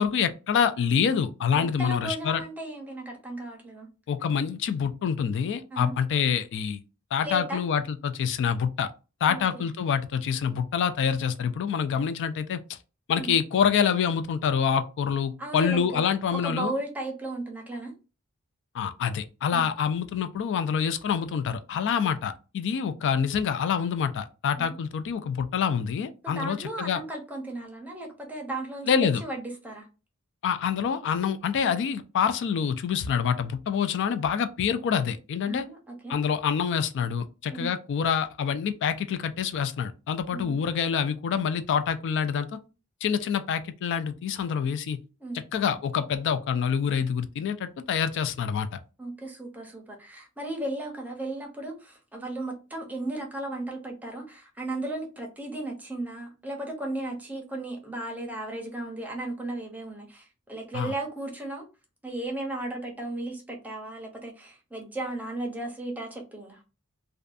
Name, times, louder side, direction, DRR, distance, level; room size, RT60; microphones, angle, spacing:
voice 1, 0.0-2.4 4.1-6.8 7.1-8.9 9.2-12.8 13.1-16.7 18.7-27.0 28.9-29.2 30.4-35.7 36.1-42.5 43.0-45.0 45.5-48.7 60.7-60.9, left 7 dB, 55° left, 0.3 m, -26 dB
voice 2, 1.5-3.9 5.7-6.0 7.2-7.6 9.3-9.7 13.1-13.3 15.4-16.0 16.4-17.9 19.5-19.7 24.6-24.7 26.2-29.9 35.5-36.2 37.5-37.7 40.3-40.6 45.2-45.4 49.0-61.6 62.0-66.6, right 2 dB, 5° right, 0.6 m, -35 dB
2.5 x 2.2 x 2.4 m
head